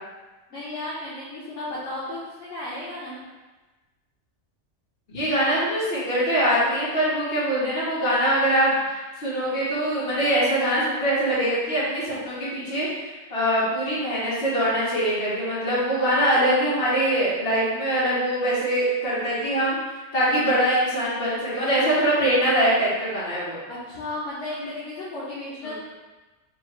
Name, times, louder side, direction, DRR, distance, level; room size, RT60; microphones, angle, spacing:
voice 1, 0.5-3.2 23.7-25.7, left 2 dB, 70° left, -9 dB, 1.1 m, -34 dB
voice 2, 5.1-19.8 20.1-23.6 24.6-24.7 25.6-25.7, right 1 dB, 55° left, -9 dB, 1.6 m, -23 dB
3.5 x 2.3 x 4.2 m, 1.2 s
omnidirectional pair, 1.3 m